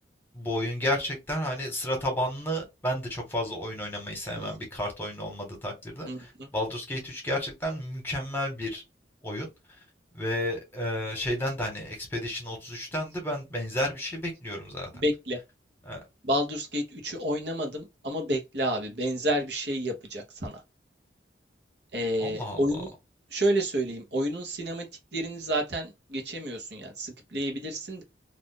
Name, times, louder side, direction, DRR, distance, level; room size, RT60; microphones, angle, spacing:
voice 1, 0.3-8.8 9.2-9.5 10.1-14.9 15.8-16.0 22.2-22.8, left 1 dB, 10° left, 1.2 m, -32 dB
voice 2, 6.0-6.5 14.9-15.4 16.2-20.6 21.9-22.9 23.3-24.9 25.1-28.0, equal, 70° right, 1.0 m, -30 dB
2.6 x 2.5 x 3.6 m
head